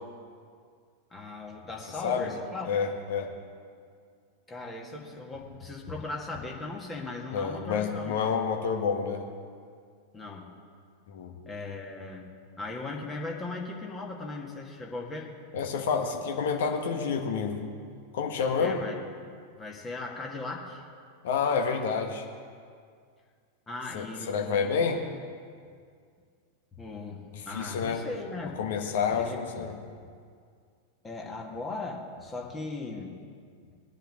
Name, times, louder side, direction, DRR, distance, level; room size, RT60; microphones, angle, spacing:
voice 1, 1.1-2.7 4.5-8.2 10.1-10.6 11.4-15.3 18.6-19.0 19.5-20.8 23.7-24.5 24.8-24.9 26.8-28.6 29.1-29.6 31.0-33.2, left 3 dB, 15° left, 0 dB, 1.8 m, -38 dB
voice 2, 2.0-2.3 2.7-3.3 7.3-9.2 11.1-11.3 15.5-17.6 18.1-18.8 21.2-22.2 23.9-25.0 27.3-28.0 28.6-29.8, left 6 dB, 55° left, 3 dB, 1.5 m, -29 dB
21.0 x 9.9 x 3.7 m, 2.1 s
figure-of-eight pair, 90°, 0 cm